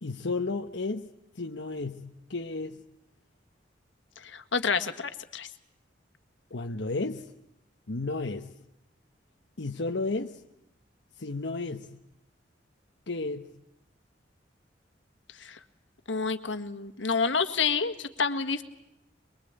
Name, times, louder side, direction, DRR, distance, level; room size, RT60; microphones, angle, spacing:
voice 1, 0.0-1.1 1.4-2.8 6.5-7.3 7.9-8.5 9.6-10.4 11.2-11.9 13.1-13.5, left 3 dB, 70° left, 1.1 m, -33 dB
voice 2, 4.2-5.5 15.4-15.6 16.1-18.6, left 5 dB, 85° left, 1.8 m, -29 dB
23.5 x 23.5 x 8.9 m
head